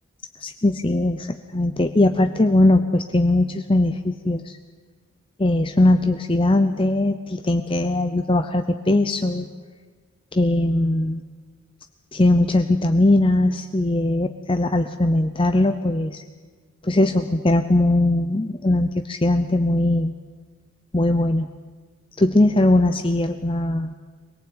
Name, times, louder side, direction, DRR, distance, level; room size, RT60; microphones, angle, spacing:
voice 1, 0.4-4.6 5.4-9.5 10.3-11.2 12.1-16.2 16.8-20.1 20.9-21.5 22.2-23.9, left 1 dB, 25° left, 7 dB, 0.7 m, -20 dB
24.0 x 18.5 x 8.8 m, 1.4 s
head